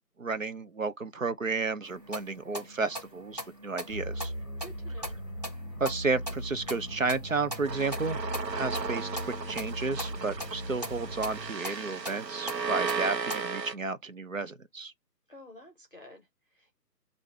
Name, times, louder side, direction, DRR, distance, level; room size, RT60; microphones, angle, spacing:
voice 1, 0.2-4.3 5.8-8.2 8.5-14.9, right 4 dB, 55° right, 0.5 m, -32 dB
sound 1, 1.8-13.4, equal, 25° right, 1.1 m, -42 dB
sound 2, 3.9-11.5, equal, 15° left, 1.2 m, -39 dB
voice 2, 4.6-5.2 15.3-16.8, left 1 dB, 35° left, 0.8 m, -51 dB
sound 3, 7.7-13.7, right 5 dB, 80° right, 0.9 m, -35 dB
6.3 x 2.6 x 3.3 m
figure-of-eight pair, 175°, 50 cm